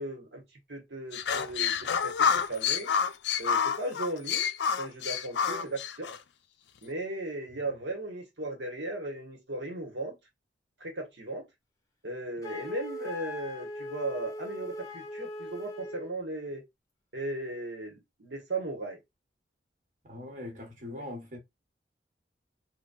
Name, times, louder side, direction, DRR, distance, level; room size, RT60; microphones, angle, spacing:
voice 1, 0.0-2.9 3.4-4.5 4.8-6.1 6.8-10.2 10.8-11.4 12.0-16.6 17.1-19.0 20.9-21.0, right 2 dB, 70° right, 1.1 m, -37 dB
sound 1, 1.1-6.2, left 7 dB, 65° left, 0.4 m, -28 dB
Wind instrument woodwind instrument, 12.4-16.1, left 1 dB, 20° left, 0.7 m, -40 dB
voice 2, 20.1-21.4, left 1 dB, 45° right, 1.2 m, -41 dB
3.9 x 2.2 x 2.3 m
head